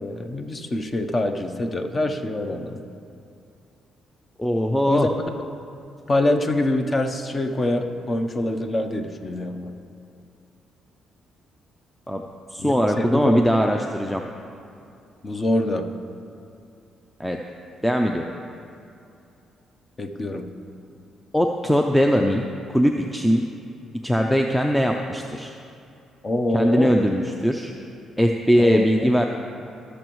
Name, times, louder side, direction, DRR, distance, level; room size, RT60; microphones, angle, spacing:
voice 1, 0.0-2.8 4.9-5.1 6.1-9.7 12.6-13.4 15.2-15.9 20.0-20.5 26.2-26.9 28.6-29.1, left 1 dB, 30° left, 6 dB, 0.7 m, -25 dB
voice 2, 4.4-5.1 12.1-12.2 12.5-14.2 17.2-17.4 17.8-18.2 21.3-23.4 24.0-25.5 26.5-27.7 28.2-29.2, equal, 5° left, 2 dB, 0.5 m, -20 dB
17.5 x 6.3 x 3.1 m, 2.6 s
cardioid pair, 90°, 0 cm